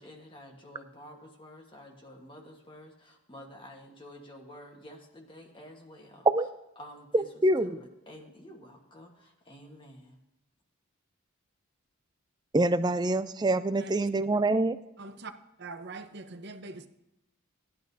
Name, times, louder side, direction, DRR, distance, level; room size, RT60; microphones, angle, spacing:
voice 1, 0.0-6.3 6.8-7.3 7.6-10.2, left 1 dB, 25° left, 1.3 m, -50 dB
voice 2, 7.1-7.8 12.5-14.7, right 2 dB, 20° right, 0.4 m, -25 dB
voice 3, 13.7-14.1 15.0-15.3 15.6-16.9, right 3 dB, 50° right, 0.8 m, -43 dB
16.5 x 11.0 x 2.7 m
head